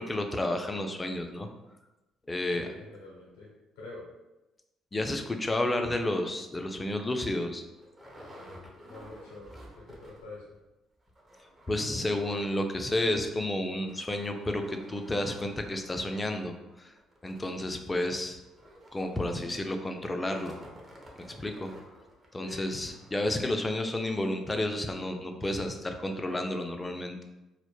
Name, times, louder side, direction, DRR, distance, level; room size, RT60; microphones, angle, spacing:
voice 1, 0.0-1.5 2.3-2.7 4.9-7.6 11.7-16.9 17.2-18.4 18.9-20.6 21.4-21.7 22.3-27.2, left 1 dB, 20° left, 5 dB, 0.3 m, -31 dB
voice 2, 2.5-3.5 3.8-4.0 8.9-10.4 22.4-22.7, left 2 dB, 85° left, -5 dB, 0.5 m, -45 dB
sound 1, 6.5-6.7 7.1-7.2 7.4-10.4 10.7-10.8 11.0-23.8 24.4-24.5 24.9-25.0, equal, 25° right, 0.6 m, -53 dB
2.1 x 2.0 x 3.0 m, 1.0 s
supercardioid pair, 65°, 0 cm